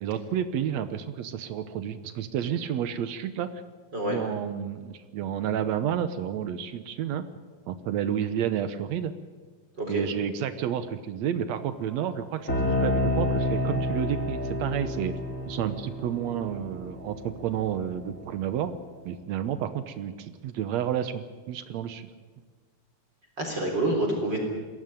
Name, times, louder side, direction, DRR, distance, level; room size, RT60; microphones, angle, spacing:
voice 1, 0.0-3.5 4.1-7.2 7.7-9.1 9.9-15.2 15.5-18.7 19.0-22.1, right 9 dB, 80° right, 11 dB, 1.5 m, -30 dB
sound 1, 12.5-18.1, left 1 dB, 20° left, 4.2 m, -29 dB
voice 2, 23.4-24.4, right 1 dB, 30° right, 1 dB, 3.9 m, -27 dB
22.5 x 16.5 x 9.2 m, 1.5 s
omnidirectional pair, 4.4 m